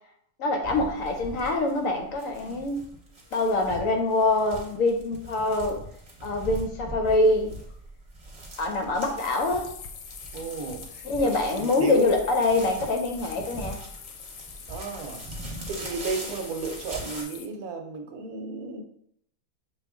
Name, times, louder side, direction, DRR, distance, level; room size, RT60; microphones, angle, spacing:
voice 1, 0.4-2.8 3.3-5.8 6.2-7.5 8.6-9.7 11.0-13.8, left 2 dB, 65° left, 0.9 m, -25 dB
sound 1, 0.6-17.2, right 1 dB, 25° right, 1.0 m, -41 dB
sound 2, 9.2-17.5, left 7 dB, 85° left, 1.2 m, -44 dB
voice 2, 10.3-11.3 11.6-12.1 14.7-15.2 15.7-18.8, right 4 dB, 70° right, 1.1 m, -33 dB
6.1 x 2.4 x 3.5 m
omnidirectional pair, 1.7 m